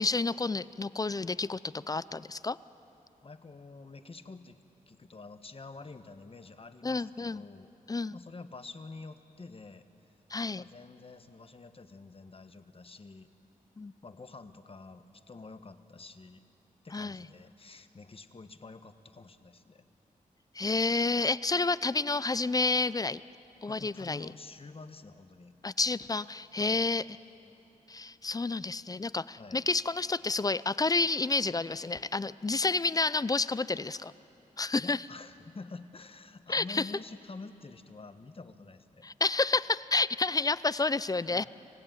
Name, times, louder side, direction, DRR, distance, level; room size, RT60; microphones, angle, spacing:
voice 1, 0.0-2.6 6.8-7.4 7.9-8.2 10.3-10.6 13.8-13.9 16.9-17.2 20.5-23.2 23.6-24.3 25.6-27.0 27.9-34.1 34.6-35.0 36.5-36.9 39.0-41.5, left 3 dB, 25° left, 17 dB, 0.5 m, -30 dB
voice 2, 3.2-7.7 8.1-9.9 10.5-13.3 14.0-16.4 16.8-19.8 23.7-25.6 26.6-26.9 29.4-29.6 34.8-39.1 41.3-41.5, left 3 dB, 40° left, 9 dB, 1.2 m, -48 dB
27.0 x 15.5 x 9.3 m, 3.0 s
cardioid pair, 65°, 15 cm